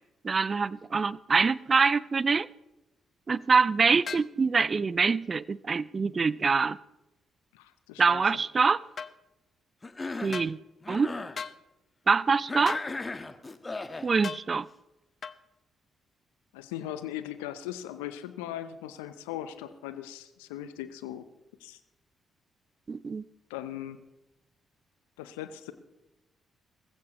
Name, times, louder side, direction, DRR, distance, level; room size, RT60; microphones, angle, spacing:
voice 1, 0.2-2.5 3.3-6.8 8.0-8.8 10.2-10.6 10.9-11.2 12.1-12.8 14.0-14.7 22.9-23.2, right 5 dB, 40° right, 0.4 m, -25 dB
sound 1, 4.1-4.3 9.0-9.1 10.3-10.5 11.4-11.6 12.7-12.9 14.2-14.5 15.2-15.4, left 6 dB, 50° left, 0.7 m, -37 dB
voice 2, 7.5-8.2 16.5-21.2 21.6-21.8 23.5-24.0 25.2-25.7, left 12 dB, 80° left, 0.6 m, -39 dB
Cough, 9.8-10.4 10.8-11.4 12.5-14.1, left 3 dB, 25° left, 1.3 m, -36 dB
19.5 x 15.5 x 3.1 m
hypercardioid pair, 45°, 0 cm